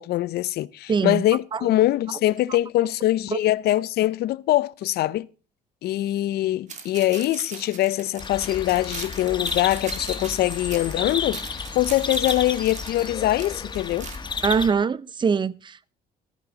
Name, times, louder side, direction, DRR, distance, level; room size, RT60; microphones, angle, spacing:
voice 1, 0.0-5.3 5.8-11.4 11.7-14.1, left 15 dB, 70° left, 0.6 m, -23 dB
voice 2, 0.9-1.2 1.5-1.7 3.3-3.4 14.4-15.9, right 5 dB, 30° right, 0.6 m, -23 dB
sound 1, 6.7-14.2, right 5 dB, 45° right, 2.7 m, -40 dB
sound 2, 8.2-14.7, left 5 dB, 25° left, 1.4 m, -32 dB
14.0 x 13.5 x 3.9 m
cardioid pair, 110°, 17 cm